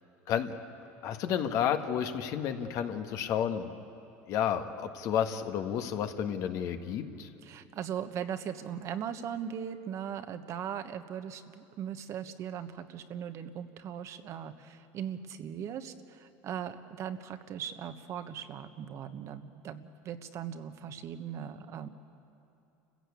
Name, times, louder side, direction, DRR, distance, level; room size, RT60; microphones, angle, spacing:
voice 1, 1.0-3.7 4.3-7.3, left 9 dB, 55° left, 6 dB, 1.6 m, -31 dB
voice 2, 7.4-21.9, right 8 dB, 50° right, 9 dB, 1.3 m, -39 dB
29.0 x 15.5 x 8.5 m, 2.8 s
supercardioid pair, 105°, 7 cm